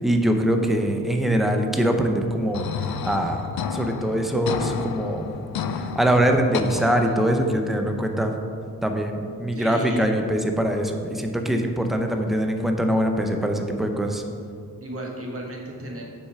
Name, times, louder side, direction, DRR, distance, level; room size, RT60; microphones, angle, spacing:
voice 1, 0.0-5.3 5.9-8.3 8.8-14.2, right 1 dB, ahead, 4 dB, 0.6 m, -23 dB
sound 1, 2.5-7.5, left 6 dB, 75° left, 0.5 m, -31 dB
voice 2, 9.5-10.1 14.8-16.1, right 1 dB, 40° right, -1 dB, 1.3 m, -34 dB
6.6 x 5.6 x 4.7 m, 2.3 s
wide cardioid pair, 105°, 37 cm